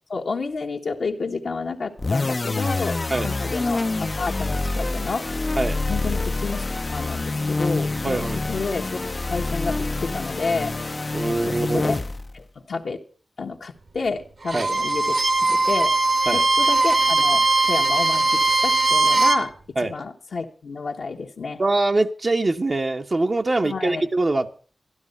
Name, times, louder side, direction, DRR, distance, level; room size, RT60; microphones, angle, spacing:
voice 1, 0.1-5.3 5.9-6.7 6.9-8.2 8.5-10.7 11.3-12.0 12.3-13.0 13.4-15.2 15.5-15.9 16.3-19.5 19.8-21.6 23.6-24.1, left 4 dB, 75° left, 1.3 m, -30 dB
sound 1, 2.0-12.4, left 2 dB, 40° left, 0.5 m, -26 dB
voice 2, 8.0-8.4 11.1-11.9 14.5-14.7 16.3-16.4 19.8-19.9 21.6-24.6, right 2 dB, 45° right, 0.8 m, -23 dB
Bowed string instrument, 14.4-19.4, right 3 dB, 65° right, 1.5 m, -20 dB
12.5 x 12.0 x 5.4 m
cardioid pair, 50°, 0 cm